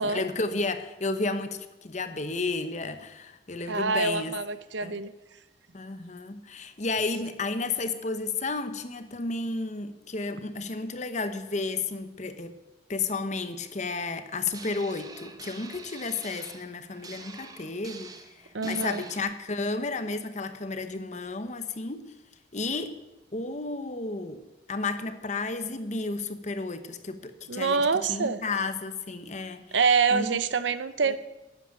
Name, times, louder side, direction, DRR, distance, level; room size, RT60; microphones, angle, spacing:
voice 1, 0.0-4.3 4.8-5.0 5.7-12.5 12.9-22.0 22.5-23.0 23.3-24.4 24.7-29.6 30.1-30.4 31.0-31.2, left 3 dB, 40° left, 10 dB, 1.0 m, -32 dB
voice 2, 3.7-5.1 18.5-19.0 27.5-28.4 29.7-31.2, right 5 dB, 80° right, 13 dB, 0.8 m, -26 dB
sound 1, 14.5-19.2, right 4 dB, 20° right, 0.9 m, -46 dB
11.5 x 8.0 x 8.9 m, 1.0 s
head